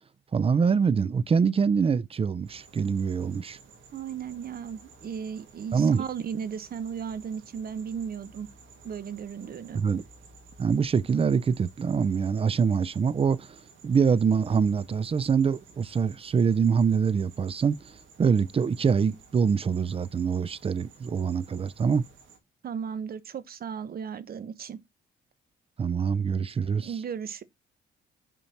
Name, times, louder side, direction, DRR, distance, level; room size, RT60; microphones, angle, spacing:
voice 1, 0.3-3.6 5.7-6.0 9.7-10.0 10.6-13.6 13.8-22.0 25.8-26.9, right 6 dB, 30° right, 0.4 m, -25 dB
sound 1, 2.4-22.4, right 4 dB, 80° right, 2.4 m, -54 dB
voice 2, 3.9-8.5 8.8-9.8 22.6-24.8 26.8-27.4, right 7 dB, 50° right, 0.9 m, -35 dB
5.7 x 4.5 x 4.1 m
cardioid pair, 90°, 20 cm